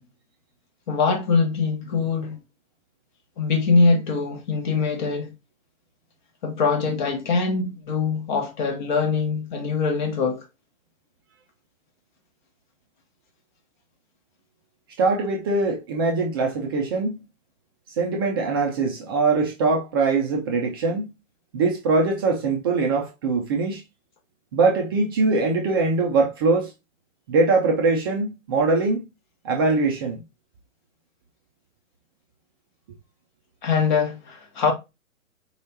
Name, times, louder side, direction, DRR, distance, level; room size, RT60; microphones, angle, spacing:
voice 1, 0.9-2.4 3.4-5.3 6.4-10.4 33.6-34.7, left 4 dB, 35° left, 1.1 m, -23 dB
voice 2, 15.0-17.2 18.0-21.1 21.5-23.8 24.5-26.7 27.3-29.1 29.4-30.2, right 3 dB, 20° right, 0.5 m, -22 dB
4.6 x 3.2 x 2.6 m
figure-of-eight pair, 115°, 39 cm